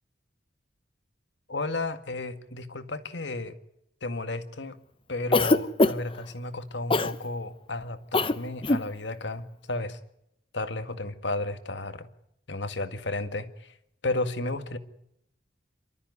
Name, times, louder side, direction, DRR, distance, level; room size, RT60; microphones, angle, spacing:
voice 1, 1.5-3.6 4.0-4.8 5.1-10.0 10.5-12.1 12.5-13.7 14.0-14.8, left 2 dB, 80° left, 2.0 m, -33 dB
Cough, 5.3-6.2 6.9-7.2 8.1-8.4 8.6-8.9, left 2 dB, 30° left, 0.9 m, -22 dB
27.5 x 13.5 x 9.7 m
head